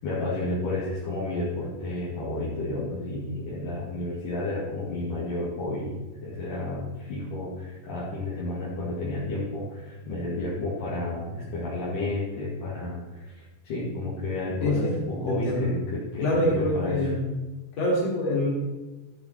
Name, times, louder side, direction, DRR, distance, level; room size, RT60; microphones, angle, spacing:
voice 1, 0.0-17.1, left 2 dB, 55° left, -9 dB, 3.4 m, -31 dB
voice 2, 14.6-15.7 16.2-17.3 17.8-18.5, left 1 dB, 40° left, -5 dB, 3.9 m, -25 dB
14.0 x 7.4 x 4.4 m, 1.1 s
omnidirectional pair, 5.0 m